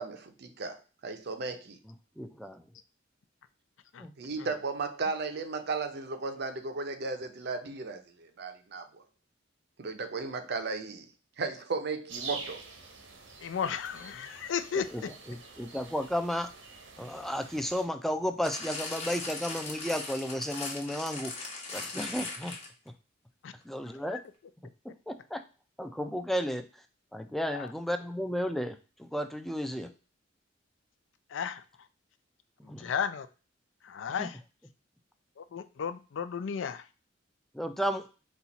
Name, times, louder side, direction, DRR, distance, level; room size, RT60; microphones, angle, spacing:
voice 1, 0.0-1.8 4.2-9.0 9.8-11.1 11.4-12.6, right 4 dB, 55° right, 0.5 m, -35 dB
voice 2, 1.9-2.6 4.0-4.1 14.8-16.5 17.0-22.6 22.9-23.0 23.6-24.2 25.1-25.4 25.8-26.6 27.1-29.9 32.6-32.9 34.2-34.3 37.5-38.0, equal, ahead, 0.3 m, -33 dB
sound 1, 12.1-17.9, right 4 dB, 85° right, 0.9 m, -46 dB
voice 3, 13.4-15.1 23.4-23.5 24.1-24.2 27.5-27.7 31.3-31.6 32.8-33.3 33.8-34.4 35.4-36.8, left 7 dB, 70° left, 0.4 m, -34 dB
sound 2, 18.4-22.9 23.6-23.7, left 3 dB, 35° left, 1.0 m, -39 dB
4.3 x 2.4 x 4.0 m
head